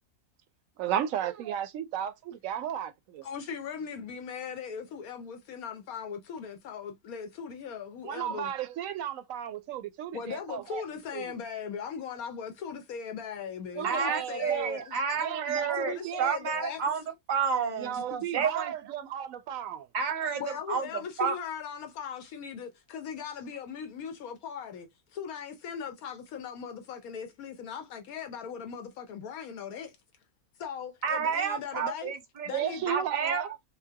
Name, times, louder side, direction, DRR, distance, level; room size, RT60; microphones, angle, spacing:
voice 1, 0.8-3.3 8.0-10.8 11.1-11.3 13.7-14.7 15.2-16.3 17.7-19.9 32.5-33.6, right 10 dB, 70° right, 0.9 m, -34 dB
voice 2, 3.2-8.5 10.1-15.0 15.8-16.8 17.9-18.2 20.4-29.9 30.6-32.1 32.4-32.9, left 7 dB, 80° left, 1.1 m, -39 dB
voice 3, 13.8-17.0 17.3-17.9 18.3-18.7 19.9-20.4 20.7-20.9 21.2-21.4 31.0-32.5 32.9-33.4, right 6 dB, 40° right, 0.7 m, -30 dB
5.7 x 2.0 x 2.7 m
omnidirectional pair, 1.5 m